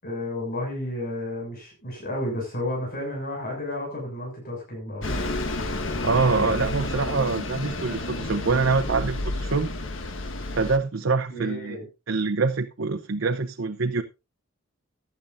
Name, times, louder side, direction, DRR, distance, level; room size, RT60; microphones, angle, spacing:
voice 1, 0.0-5.2 11.3-11.9, left 1 dB, 50° left, 6.7 m, -32 dB
Bus, 5.0-10.8, left 2 dB, 75° left, 1.5 m, -30 dB
voice 2, 6.0-9.7 10.5-11.8 12.1-14.0, right 4 dB, 85° right, 0.8 m, -25 dB
16.0 x 11.0 x 2.6 m
head